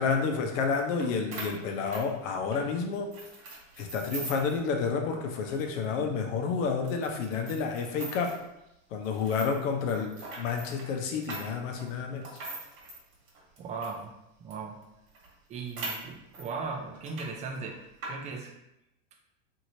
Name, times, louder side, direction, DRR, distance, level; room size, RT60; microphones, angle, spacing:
voice 1, 0.0-3.1 3.8-8.4 8.9-12.3, left 5 dB, 70° left, 3 dB, 0.7 m, -30 dB
sound 1, 1.0-1.1 1.3-2.6 3.1-4.6 4.9-5.0 5.4-5.5 6.1-6.2 6.9-8.4 9.0-14.0 14.5-14.6 14.8-14.9 15.1-16.5 16.9-17.3 17.5-18.1, right 2 dB, 50° right, 1.4 m, -41 dB
voice 2, 13.6-14.1 14.4-14.8 15.5-17.8 18.1-18.5, right 4 dB, 20° right, 2 dB, 0.3 m, -37 dB
3.0 x 2.7 x 2.7 m, 0.87 s
supercardioid pair, 115°, 39 cm